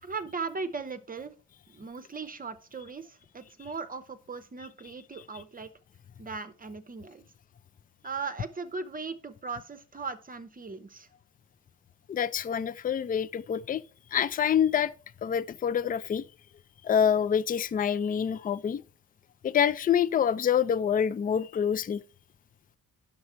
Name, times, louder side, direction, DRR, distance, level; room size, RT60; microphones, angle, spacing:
voice 1, 0.0-1.3 1.7-5.7 6.2-7.2 8.0-11.1, right 4 dB, 25° right, 0.8 m, -38 dB
voice 2, 12.1-13.8 14.1-14.9 15.2-16.2 16.8-18.8 19.4-22.0, left 8 dB, 25° left, 0.4 m, -26 dB
9.4 x 6.7 x 4.4 m
cardioid pair, 125°, 32 cm